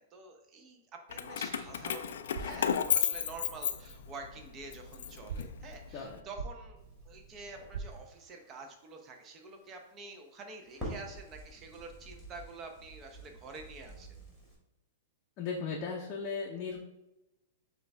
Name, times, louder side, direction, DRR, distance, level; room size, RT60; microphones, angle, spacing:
voice 1, 0.0-14.1, right 3 dB, 25° right, 3 dB, 0.7 m, -48 dB
Keys jangling, 1.1-4.3 4.7-6.0, left 8 dB, 75° left, 0.3 m, -33 dB
sound 1, 2.3-8.0, right 5 dB, 65° right, 0.5 m, -46 dB
Crackle, 6.8-14.5, equal, 5° right, 1.5 m, -49 dB
voice 2, 15.4-16.8, left 5 dB, 30° left, -2 dB, 0.6 m, -36 dB
6.7 x 2.3 x 3.4 m, 0.95 s
hypercardioid pair, 150°, 0 cm